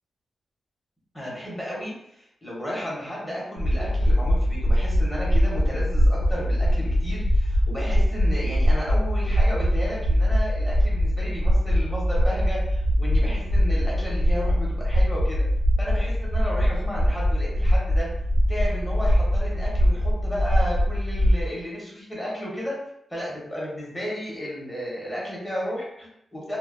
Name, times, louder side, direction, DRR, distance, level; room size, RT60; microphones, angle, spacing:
voice 1, 1.1-15.4 15.8-18.1 18.5-22.7 23.1-26.6, equal, 10° left, -6 dB, 0.7 m, -33 dB
sound 1, 3.6-21.4, equal, 50° left, 0.4 m, -22 dB
2.6 x 2.0 x 2.4 m, 0.76 s
wide cardioid pair, 175°, 0 cm